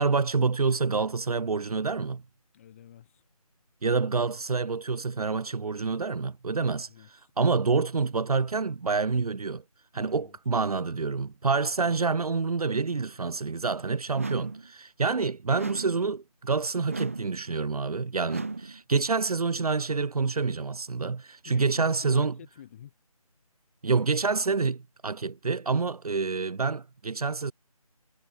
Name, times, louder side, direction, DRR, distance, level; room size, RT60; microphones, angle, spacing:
voice 1, 0.0-2.2 3.8-6.9 7.4-9.6 9.9-22.3 23.8-27.5, right 4 dB, 75° right, 0.8 m, -27 dB
voice 2, 2.5-3.2 6.7-7.1 9.9-10.4 21.4-22.9, left 10 dB, 20° left, 3.1 m, -49 dB
sound 1, 14.1-14.7 15.5-16.1 16.9-17.4 18.3-18.8, right 3 dB, 25° right, 0.4 m, -35 dB
figure-of-eight pair, 165°, 19 cm